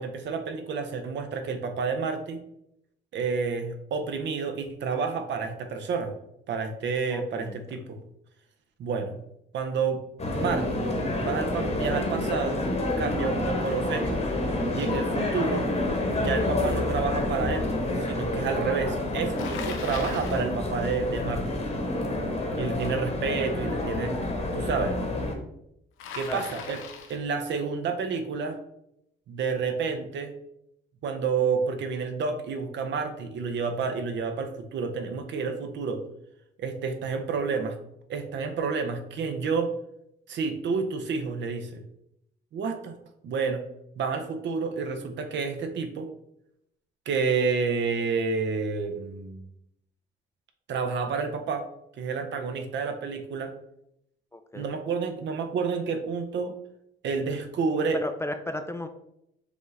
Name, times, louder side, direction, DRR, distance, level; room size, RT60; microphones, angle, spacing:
voice 1, 0.0-2.4 3.1-6.1 6.5-8.0 8.8-9.2 9.5-10.0 10.3-10.7 11.1-12.6 13.0-14.2 14.7-15.6 16.2-17.7 18.0-21.6 22.6-24.2 24.5-25.0 26.1-26.8 27.1-28.6 29.3-30.3 31.0-36.0 36.6-37.8 38.1-39.7 40.3-41.8 42.5-42.9 43.2-43.6 44.0-46.1 47.1-49.5 50.7-51.7 52.0-53.5 54.5-56.5 57.0-58.0, right 5 dB, 65° right, 7 dB, 0.6 m, -29 dB
voice 2, 7.1-7.6 26.3-26.4 54.3-54.7 57.9-58.9, left 1 dB, 15° left, 7 dB, 0.3 m, -34 dB
sound 1, 10.2-25.4, left 1 dB, 35° left, 1.0 m, -28 dB
Bicycle, 19.4-20.5 26.0-27.3, left 6 dB, 90° left, 0.6 m, -39 dB
5.0 x 2.4 x 3.2 m, 0.79 s
cardioid pair, 90°, 20 cm